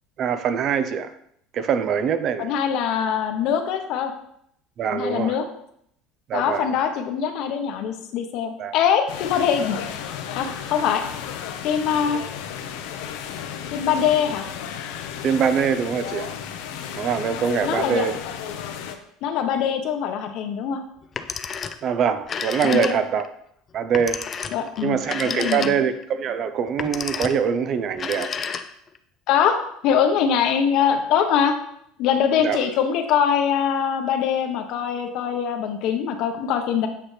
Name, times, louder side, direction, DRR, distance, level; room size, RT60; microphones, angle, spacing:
voice 1, 0.2-1.1 1.5-2.5 4.8-5.4 6.3-6.7 8.6-8.7 15.2-16.3 17.0-18.2 21.8-23.2 23.7-24.2 24.8-28.3 32.4-32.6, right 7 dB, 40° right, 11 dB, 0.6 m, -23 dB
voice 2, 2.4-4.1 4.9-5.4 6.3-9.8 10.4-11.0 11.6-12.2 13.7-14.5 17.6-18.1 19.2-20.8 22.6-23.0 24.5-25.0 25.2-25.7 29.3-29.6 29.8-31.5 32.0-36.9, left 8 dB, 60° left, 5 dB, 1.1 m, -23 dB
sound 1, 9.1-19.0, left 8 dB, 80° left, 0.9 m, -33 dB
Telephone, 21.0-21.9 22.2-23.3 23.9-26.0 26.7-27.5 27.9-29.0, left 6 dB, 25° left, 0.5 m, -31 dB
8.7 x 5.8 x 3.3 m, 0.71 s
cardioid pair, 140°, 0 cm